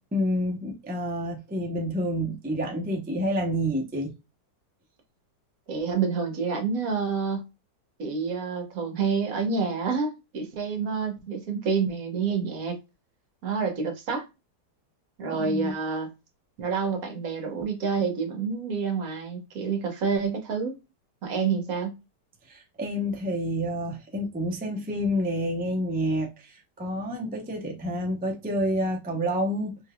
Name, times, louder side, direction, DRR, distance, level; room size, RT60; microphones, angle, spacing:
voice 1, 0.1-4.1 15.4-15.7 22.5-29.8, equal, 15° right, 0.3 m, -28 dB
voice 2, 5.7-7.4 8.0-12.8 13.4-14.3 15.2-16.1 16.6-20.8 21.2-22.0, right 5 dB, 60° right, 1.3 m, -28 dB
3.9 x 3.4 x 2.2 m
omnidirectional pair, 1.8 m